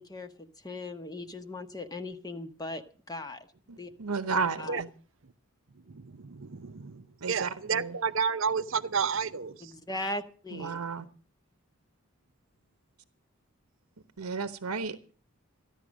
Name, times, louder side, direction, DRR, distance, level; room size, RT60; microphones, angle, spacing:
voice 1, 0.0-2.8 3.1-3.5 3.7-3.9 4.6-4.8 9.6-10.8, left 2 dB, 15° left, 0.8 m, -38 dB
voice 2, 3.7-4.9 7.2-8.0 10.5-11.1 14.2-15.0, right 4 dB, 90° right, 1.0 m, -33 dB
voice 3, 5.9-9.7, right 6 dB, 60° right, 0.6 m, -31 dB
14.5 x 11.0 x 6.3 m
head